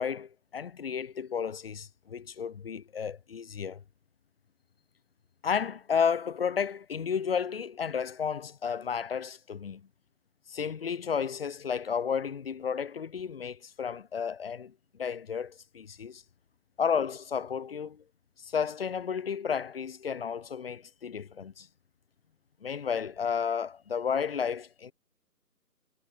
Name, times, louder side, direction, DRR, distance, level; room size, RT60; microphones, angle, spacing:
voice 1, 0.0-3.8 5.4-9.8 10.5-16.2 16.8-18.0 18.4-21.7 22.6-24.9, left 7 dB, 35° left, 6.7 m, -32 dB
figure-of-eight pair, 160°, 47 cm